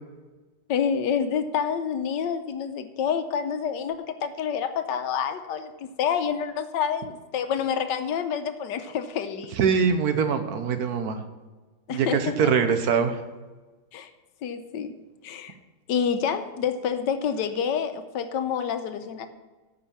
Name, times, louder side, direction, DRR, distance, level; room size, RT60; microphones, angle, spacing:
voice 1, 0.7-9.5 11.9-12.5 13.9-14.1 14.4-14.9 15.2-15.5 15.9-19.3, left 7 dB, 80° left, 9 dB, 1.4 m, -28 dB
voice 2, 9.5-11.2 11.9-13.2, right 6 dB, 65° right, 8 dB, 1.2 m, -23 dB
8.9 x 5.5 x 6.9 m, 1.3 s
omnidirectional pair, 1.9 m